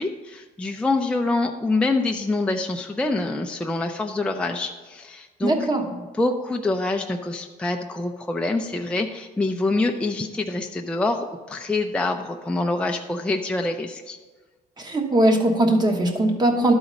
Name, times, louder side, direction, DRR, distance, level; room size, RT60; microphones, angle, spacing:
voice 1, 0.0-14.2, left 2 dB, 5° left, 3 dB, 0.4 m, -26 dB
voice 2, 5.4-5.8 14.8-16.7, right 1 dB, 25° right, 3 dB, 1.2 m, -20 dB
12.0 x 4.0 x 5.2 m, 1.3 s
cardioid pair, 110°, 17 cm